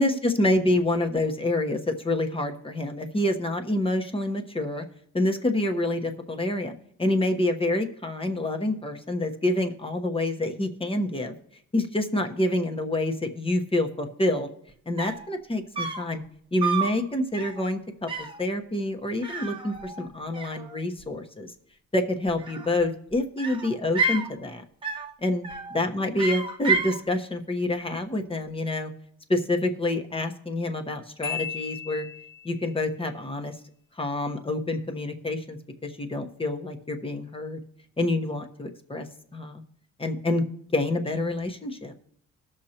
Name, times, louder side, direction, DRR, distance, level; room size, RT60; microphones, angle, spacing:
voice 1, 0.0-4.8 5.1-6.7 7.0-11.3 11.7-14.5 14.9-16.2 16.5-21.5 21.9-24.6 25.2-28.9 29.3-32.1 32.4-33.6 34.0-37.6 38.0-39.1 39.3-39.6 40.0-40.4 40.7-41.9, left 1 dB, 20° left, 4 dB, 1.1 m, -27 dB
sound 1, 14.7-14.8 15.0-15.3 15.8-16.1 16.6-17.0 17.3-17.6 18.1-18.4 19.2-20.1 20.3-21.0 22.3-22.9 23.4-24.3 24.8-25.1 25.4-25.8 26.2-27.0, right 4 dB, 15° right, 1.1 m, -30 dB
Marimba xylophone, 31.2-32.6, left 8 dB, 70° left, 1.8 m, -35 dB
19.5 x 6.5 x 2.9 m, 0.70 s
cardioid pair, 90°, 30 cm